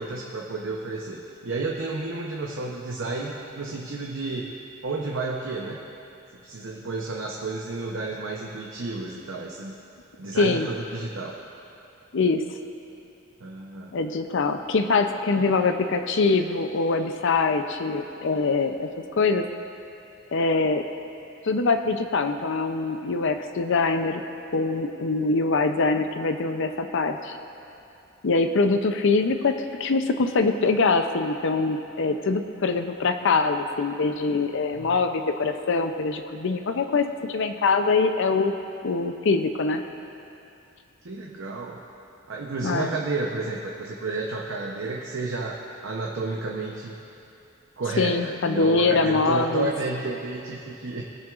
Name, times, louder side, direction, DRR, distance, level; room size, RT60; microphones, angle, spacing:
voice 1, 0.0-4.5 4.8-5.8 6.4-9.7 10.2-11.4 13.4-14.0 34.7-35.0 41.0-41.8 42.3-46.9 47.8-51.0, right 3 dB, 65° right, -2 dB, 0.8 m, -31 dB
voice 2, 10.4-10.7 12.1-12.4 13.9-18.9 19.2-19.4 20.3-20.8 21.4-24.2 24.5-27.4 28.2-38.5 38.8-39.8 42.6-42.9 48.0-49.7, left 3 dB, 65° left, 7 dB, 0.5 m, -23 dB
21.5 x 7.6 x 2.5 m, 2.7 s
head